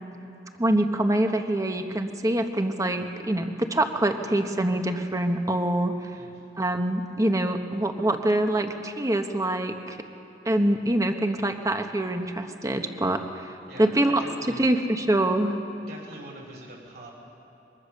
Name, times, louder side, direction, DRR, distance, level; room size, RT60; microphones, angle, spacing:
voice 1, 0.6-5.9 6.6-10.0 10.4-13.4 13.8-14.2 14.6-15.6, right 1 dB, 20° right, 6 dB, 1.2 m, -25 dB
voice 2, 6.1-6.4 13.7-14.6 15.8-17.1, right 1 dB, 60° right, -1 dB, 5.5 m, -44 dB
23.5 x 22.5 x 6.7 m, 2.9 s
head